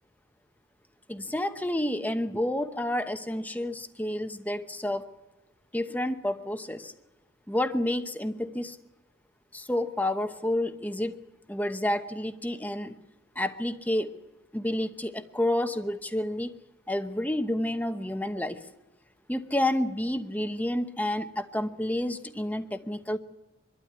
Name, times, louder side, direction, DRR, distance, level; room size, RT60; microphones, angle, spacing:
voice 1, 1.1-5.0 5.7-6.9 7.5-8.8 9.5-11.2 11.5-13.0 13.4-14.1 14.5-16.5 16.9-18.6 19.3-23.2, left 1 dB, 10° left, 9 dB, 0.9 m, -29 dB
24.5 x 12.5 x 9.6 m, 1.1 s
head